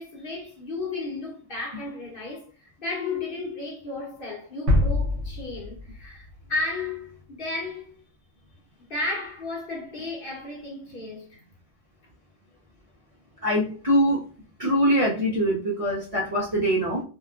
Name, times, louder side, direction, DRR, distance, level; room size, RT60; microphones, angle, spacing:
voice 1, 0.0-8.0 8.9-11.4, left 3 dB, 50° left, 1.0 m, -33 dB
sound 1, 4.7-6.6, left 1 dB, 70° right, 1.0 m, -25 dB
voice 2, 13.4-14.2 14.6-17.0, equal, 40° right, 0.6 m, -23 dB
2.8 x 2.3 x 2.3 m
omnidirectional pair, 1.3 m